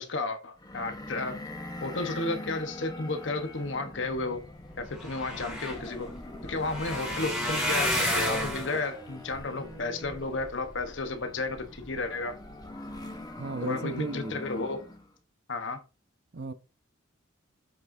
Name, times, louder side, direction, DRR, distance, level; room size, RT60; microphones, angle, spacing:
voice 1, 0.0-1.4 1.8-4.4 4.8-6.1 6.4-12.4 13.6-14.9 15.5-15.8, left 3 dB, 65° left, 1.1 m, -33 dB
sound 1, 0.6-15.1, left 1 dB, 20° left, 1.0 m, -43 dB
sound 2, 4.6-11.0 11.6-12.0 12.4-12.6 12.9-13.0, equal, 5° right, 2.3 m, -32 dB
voice 2, 13.4-14.4 16.3-16.5, right 2 dB, 55° right, 0.7 m, -34 dB
7.9 x 5.8 x 2.7 m
head